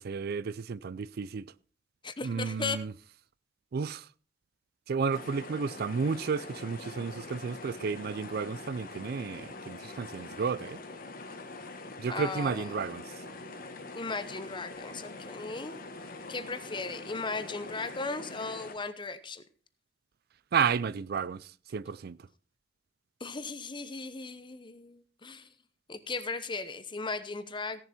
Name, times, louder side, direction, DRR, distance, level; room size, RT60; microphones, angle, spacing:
voice 1, 0.0-1.5 2.2-2.9 3.7-4.0 4.9-10.8 12.0-13.0 20.5-22.2, right 5 dB, 60° right, 0.4 m, -32 dB
voice 2, 2.0-2.8 12.1-12.7 13.9-15.8 16.3-19.4 23.2-25.5 25.9-27.8, left 3 dB, 25° left, 0.8 m, -37 dB
sound 1, 5.1-18.8, left 3 dB, 50° left, 1.4 m, -44 dB
16.5 x 7.0 x 4.2 m
head